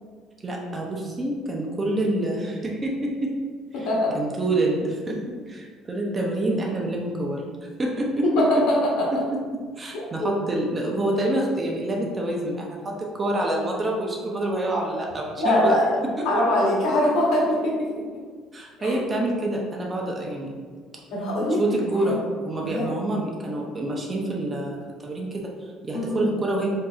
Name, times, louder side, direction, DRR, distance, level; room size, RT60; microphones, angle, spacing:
voice 1, 0.4-3.3 3.8-3.9 4.1-5.2 5.5-7.5 7.8-8.4 9.3-9.4 9.8-15.8 16.2-16.3 18.5-20.5 21.6-22.2 22.4-26.7, right 1 dB, 20° right, -2 dB, 0.6 m, -27 dB
voice 2, 3.7-4.1 8.2-9.0 9.9-10.3 15.4-16.0 16.2-18.0 18.8-19.0 21.1-21.6 22.0-22.1 22.6-22.9 25.9-26.2, left 1 dB, 85° left, -5 dB, 1.2 m, -23 dB
4.7 x 2.6 x 2.4 m, 1.5 s
cardioid pair, 145°, 0 cm